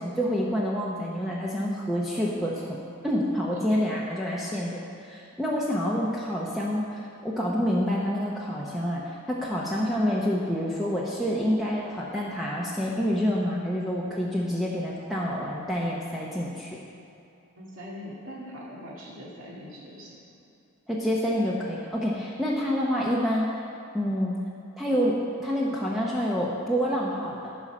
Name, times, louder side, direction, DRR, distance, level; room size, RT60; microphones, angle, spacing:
voice 1, 0.0-9.0 9.3-16.8 20.9-23.6 23.9-24.3 24.8-27.5, equal, ahead, -5 dB, 0.9 m, -27 dB
voice 2, 17.6-20.2, equal, 60° right, -6 dB, 2.1 m, -42 dB
14.0 x 5.6 x 6.2 m, 2.7 s
head